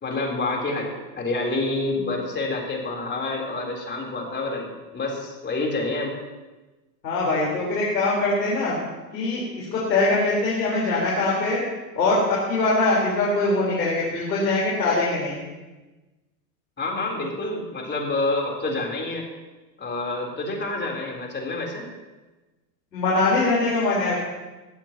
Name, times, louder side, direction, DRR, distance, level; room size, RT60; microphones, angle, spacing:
voice 1, 0.0-4.7 4.9-6.2 16.8-19.2 19.8-21.8, left 2 dB, 20° left, -1 dB, 3.7 m, -28 dB
voice 2, 7.0-8.8 9.1-11.6 12.0-12.2 12.5-15.4 22.9-24.1, left 2 dB, 85° left, -5 dB, 4.5 m, -22 dB
19.0 x 15.0 x 3.0 m, 1.2 s
hypercardioid pair, 95°, 50 cm